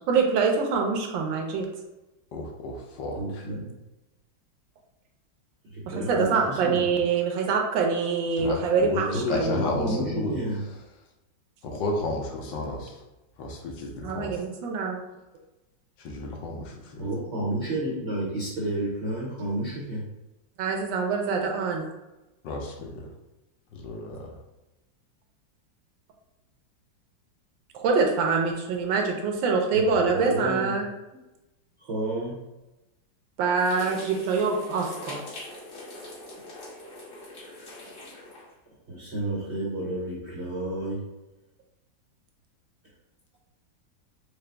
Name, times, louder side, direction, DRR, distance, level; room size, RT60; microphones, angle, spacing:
voice 1, 0.1-1.7 5.9-10.1 14.0-15.0 20.6-21.9 27.7-30.9 33.4-35.2, right 5 dB, 75° right, 2 dB, 1.3 m, -25 dB
voice 2, 2.3-3.5 8.4-10.4 11.6-13.0 13.4-14.4 16.0-17.0 22.4-23.0 23.7-24.3, left 2 dB, 70° left, 0 dB, 1.3 m, -32 dB
voice 3, 3.1-3.7 5.7-6.9 8.4-8.5 9.0-10.6 17.0-20.0 29.7-30.7 31.8-32.4 38.9-41.0, right 1 dB, 60° right, -6 dB, 0.7 m, -31 dB
sound 1, 33.6-38.5, left 1 dB, 50° left, 1.4 m, -42 dB
4.9 x 2.0 x 3.3 m, 1.0 s
omnidirectional pair, 2.1 m